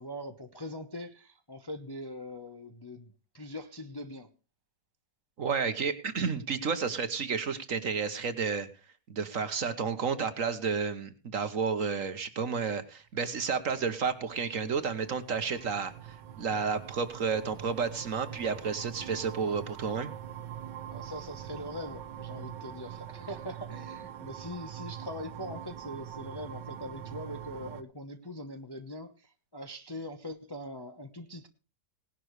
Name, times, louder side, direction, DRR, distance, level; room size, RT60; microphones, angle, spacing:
voice 1, 0.0-4.3 20.9-31.5, left 1 dB, 20° left, 6 dB, 0.7 m, -42 dB
voice 2, 5.4-8.7 9.1-15.9 16.4-20.1, right 5 dB, 55° right, 11 dB, 1.4 m, -31 dB
sound 1, 13.4-27.8, right 10 dB, 90° right, 1.5 m, -44 dB
18.5 x 11.5 x 3.2 m, 0.31 s
omnidirectional pair, 1.9 m